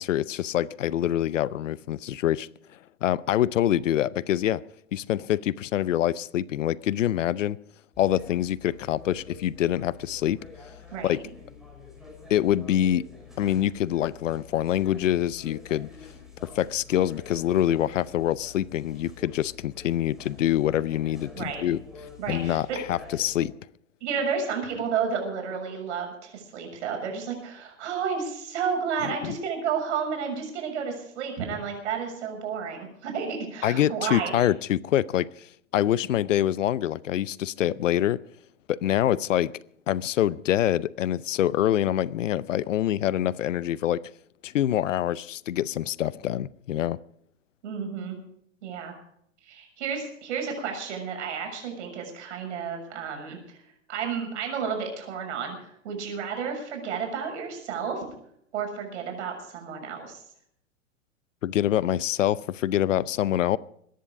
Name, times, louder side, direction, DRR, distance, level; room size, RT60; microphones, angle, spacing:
voice 1, 0.0-2.5 3.0-4.6 4.9-7.6 8.0-10.4 11.0-11.2 12.3-13.0 13.4-16.1 16.5-21.8 22.3-23.5 29.0-29.3 33.6-38.2 38.7-39.5 39.9-44.1 44.4-47.0 61.4-63.6, left 12 dB, 70° left, 0.7 m, -25 dB
sound 1, 7.9-23.4, left 5 dB, ahead, 6.5 m, -47 dB
voice 2, 22.2-22.8 24.0-34.5 47.6-48.2 48.6-48.9 49.4-53.6 53.9-58.0 58.5-60.2, right 6 dB, 60° right, 6.7 m, -31 dB
22.5 x 10.5 x 4.9 m
hypercardioid pair, 105°, 39 cm